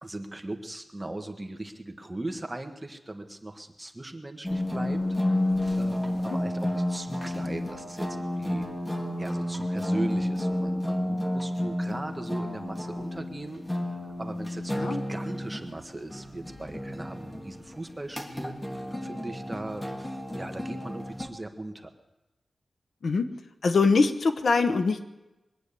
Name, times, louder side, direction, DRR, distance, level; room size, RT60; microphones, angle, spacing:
voice 1, 0.0-8.7 9.2-21.9, right 2 dB, 15° right, 5 dB, 1.4 m, -39 dB
sound 1, 4.4-21.3, left 1 dB, 10° left, 1.7 m, -31 dB
voice 2, 23.6-25.0, left 4 dB, 70° left, 8 dB, 1.0 m, -23 dB
22.5 x 9.2 x 6.8 m, 1.0 s
wide cardioid pair, 125°, 0 cm